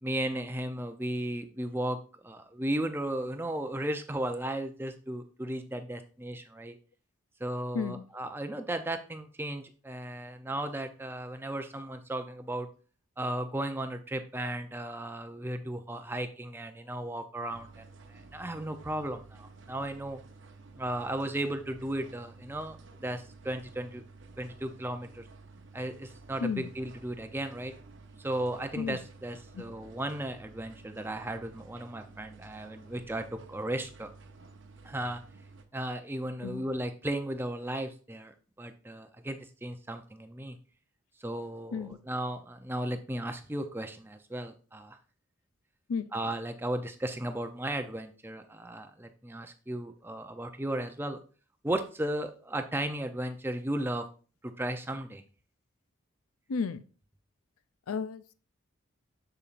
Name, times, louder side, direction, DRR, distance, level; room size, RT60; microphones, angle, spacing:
voice 1, 0.0-6.8 7.4-12.7 13.2-17.8 18.1-20.2 20.8-24.0 24.4-25.3 25.7-27.7 28.2-34.1 34.8-35.2 35.7-40.6 41.2-45.0 46.1-51.2 51.6-54.1 54.4-55.2, right 1 dB, 10° right, 7 dB, 0.5 m, -35 dB
sound 1, 17.5-35.6, right 3 dB, 55° right, 0.7 m, -52 dB
voice 2, 56.5-56.8 57.9-58.3, left 5 dB, 80° left, 15 dB, 0.5 m, -33 dB
6.9 x 6.9 x 2.5 m, 0.38 s
head